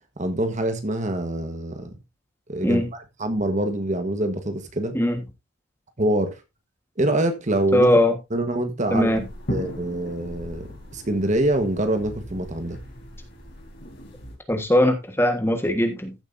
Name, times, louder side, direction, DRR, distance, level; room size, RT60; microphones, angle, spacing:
voice 1, 0.2-1.9 2.5-2.8 3.2-5.0 6.0-6.4 7.0-7.9 8.3-9.1 9.5-12.8, right 1 dB, 35° right, 1.4 m, -25 dB
voice 2, 7.7-8.2 8.9-9.2 14.5-16.1, left 1 dB, 10° left, 1.5 m, -20 dB
sound 1, 8.9-14.3, equal, 55° left, 4.4 m, -37 dB
15.0 x 7.4 x 2.7 m
head